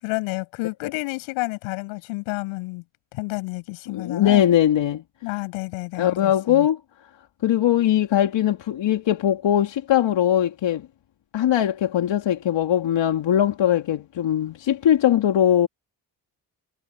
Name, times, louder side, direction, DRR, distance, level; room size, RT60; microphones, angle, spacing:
voice 1, 0.0-2.8 3.1-4.4 5.2-6.7, left 27 dB, 90° left, 7.5 m, -30 dB
voice 2, 3.9-5.0 5.9-6.8 7.4-10.9 11.3-15.7, left 11 dB, 65° left, 2.6 m, -20 dB
hypercardioid pair, 45°, 46 cm